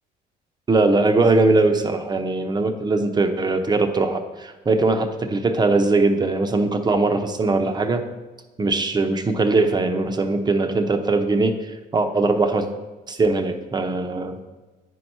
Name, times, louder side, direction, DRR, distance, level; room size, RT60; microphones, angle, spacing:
voice 1, 0.7-8.0 8.6-11.5 11.9-12.7 13.1-14.4, right 3 dB, 25° right, 6 dB, 0.9 m, -20 dB
9.5 x 4.7 x 5.5 m, 1.2 s
cardioid pair, 110°, 17 cm